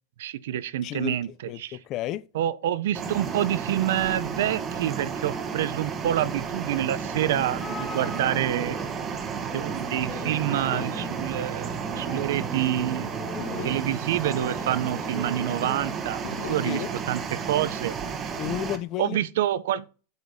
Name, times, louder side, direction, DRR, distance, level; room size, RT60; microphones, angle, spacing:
voice 1, 0.2-1.8 2.3-8.8 9.3-13.1 13.6-17.9 19.0-19.9, right 12 dB, 70° right, 0.4 m, -27 dB
voice 2, 0.8-1.2 1.4-2.3 16.7-16.9 18.4-19.2, left 13 dB, 35° left, 0.3 m, -32 dB
sound 1, 2.9-18.8, right 6 dB, 25° right, 0.9 m, -32 dB
sound 2, 7.0-16.0, left 1 dB, ahead, 1.2 m, -40 dB
sound 3, 10.5-12.8 13.4-15.6 16.2-16.7, left 9 dB, 70° left, 1.1 m, -42 dB
8.0 x 4.9 x 2.7 m
supercardioid pair, 150°, 0 cm